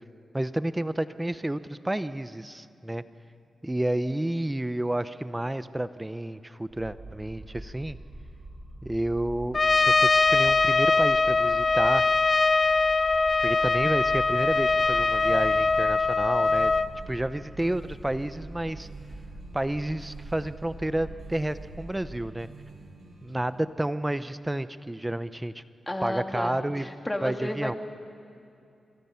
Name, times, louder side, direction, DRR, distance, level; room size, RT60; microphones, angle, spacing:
voice 1, 0.3-3.0 3.6-8.0 8.8-12.1 13.4-16.7 17.1-18.9 19.5-22.5 23.2-25.6 26.0-26.9 27.2-27.8, right 1 dB, 15° right, 13 dB, 0.7 m, -30 dB
sound 1, 6.7-22.2, right 2 dB, 45° right, 6.7 m, -44 dB
Trumpet, 9.5-16.9, left 3 dB, 40° left, 0.7 m, -22 dB
sound 2, 14.0-23.6, right 3 dB, 75° right, 7.6 m, -49 dB
voice 2, 25.9-27.8, left 1 dB, 15° left, 4 dB, 2.2 m, -32 dB
26.0 x 23.5 x 5.8 m, 2.5 s
cardioid pair, 70°, 0 cm